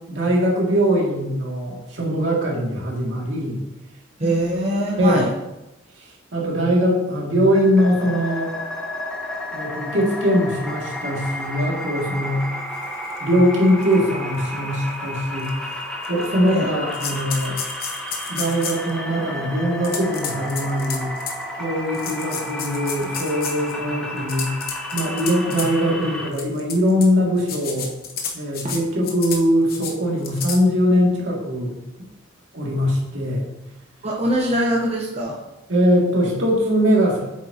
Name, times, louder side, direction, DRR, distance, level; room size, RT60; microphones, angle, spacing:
voice 1, 0.1-3.6 4.2-4.3 5.0-5.2 6.3-8.5 9.5-12.4 13.2-15.5 16.1-17.6 18.3-21.1 21.5-24.6 24.9-27.9 28.3-31.8 32.5-33.5 35.7-37.2, equal, 70° right, -3 dB, 2.2 m, -21 dB
voice 2, 4.2-5.3 16.5-16.7 28.6-28.8 34.0-35.4, right 1 dB, 30° right, -3 dB, 0.9 m, -22 dB
sound 1, 7.5-26.3, left 1 dB, 5° left, 1.1 m, -32 dB
sound 2, 13.1-13.2 13.8-13.9 14.4-14.5 15.4-15.5 16.0-16.6 16.9-18.9 19.8-21.4 21.9-23.7 24.2-25.7 26.3-27.1 27.4-28.8 29.0-29.4 29.7-29.9 30.2-30.6, left 6 dB, 50° left, 1.0 m, -31 dB
8.5 x 7.4 x 2.8 m, 0.98 s
head